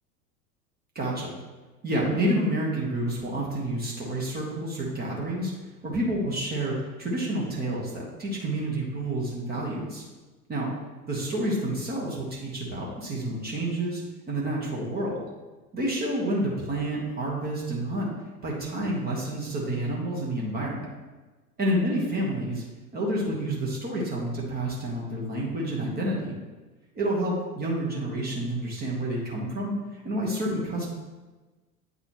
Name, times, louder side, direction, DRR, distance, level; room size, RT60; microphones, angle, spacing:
voice 1, 0.9-1.3 1.8-5.5 5.8-10.0 10.5-10.7 11.1-14.0 14.3-15.2 15.7-18.1 18.4-20.9 21.6-22.6 22.9-26.3 27.0-30.9, right 1 dB, 20° right, -3 dB, 1.2 m, -29 dB
8.7 x 4.0 x 3.0 m, 1.2 s
figure-of-eight pair, 85°, 46 cm